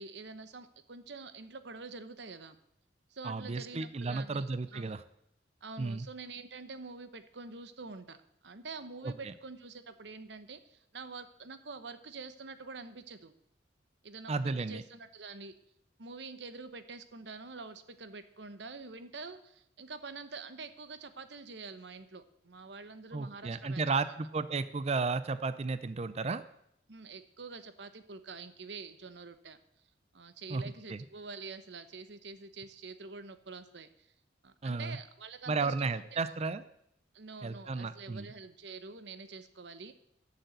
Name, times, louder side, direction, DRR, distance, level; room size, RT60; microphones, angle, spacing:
voice 1, 0.0-2.6 3.1-5.0 5.6-8.2 8.4-13.3 14.0-15.5 16.0-23.8 26.9-29.6 30.1-34.1 34.4-36.3 37.1-39.9, right 4 dB, 70° right, 11 dB, 1.0 m, -46 dB
voice 2, 3.2-5.0 5.8-6.1 9.0-9.3 14.3-14.8 23.1-26.4 30.5-30.6 30.9-31.0 34.6-35.0 35.5-36.6 37.4-38.3, right 4 dB, 35° right, 13 dB, 0.5 m, -33 dB
11.5 x 6.8 x 8.0 m, 0.75 s
head